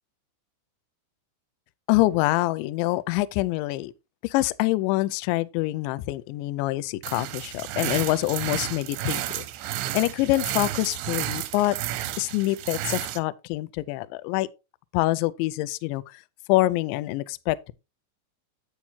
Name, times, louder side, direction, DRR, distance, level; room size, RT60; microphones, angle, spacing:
voice 1, 1.9-3.9 4.2-9.5 9.7-11.8 12.2-14.5 14.9-16.2 16.5-17.7, left 18 dB, 85° left, 2.6 m, -25 dB
sound 1, 7.0-13.2, right 13 dB, 90° right, 3.2 m, -32 dB
8.9 x 8.4 x 2.8 m
omnidirectional pair, 5.6 m